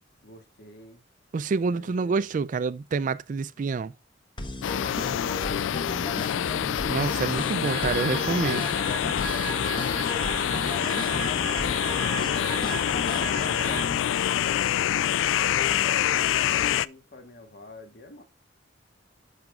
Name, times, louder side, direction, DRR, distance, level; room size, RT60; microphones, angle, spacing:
voice 1, 0.2-1.0 1.6-2.2 9.2-10.7 11.2-14.0 15.1-18.2, left 2 dB, 60° left, 1.7 m, -47 dB
voice 2, 1.3-3.9 6.9-8.7, right 4 dB, 45° right, 0.3 m, -27 dB
sound 1, 4.4-14.0, left 1 dB, 25° left, 1.0 m, -36 dB
sound 2, 4.6-16.9, left 10 dB, 90° left, 0.3 m, -26 dB
sound 3, 7.6-13.9, right 10 dB, 85° right, 0.7 m, -37 dB
12.0 x 5.2 x 2.4 m
head